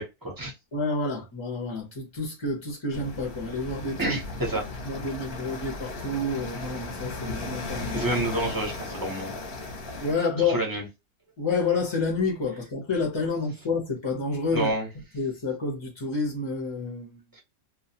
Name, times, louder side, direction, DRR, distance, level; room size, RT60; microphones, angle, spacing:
voice 1, 0.0-0.5 4.0-4.6 7.9-9.3 10.4-10.8 14.5-14.9 17.4-17.5, right 2 dB, 25° right, 0.5 m, -29 dB
voice 2, 0.7-4.2 4.8-8.1 10.0-10.6 11.4-14.7 15.1-17.2, left 3 dB, 35° left, 0.5 m, -29 dB
sound 1, 2.9-10.1, left 2 dB, 50° left, 0.8 m, -36 dB
2.3 x 2.2 x 2.6 m
omnidirectional pair, 1.5 m